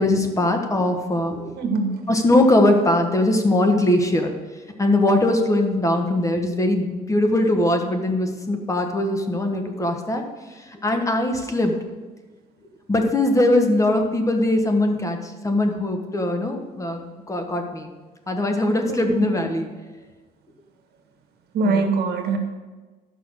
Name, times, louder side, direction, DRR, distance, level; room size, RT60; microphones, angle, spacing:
voice 1, 0.0-1.4 2.1-4.3 4.8-10.2 10.5-11.7 12.9-17.0 17.3-17.9 18.3-19.7 21.6-21.9, left 1 dB, 20° left, 4 dB, 1.4 m, -21 dB
voice 2, 1.6-2.0 18.9-19.3 21.5-22.4, right 4 dB, 70° right, 5 dB, 1.6 m, -23 dB
12.0 x 5.7 x 6.5 m, 1.2 s
cardioid pair, 110°, 17 cm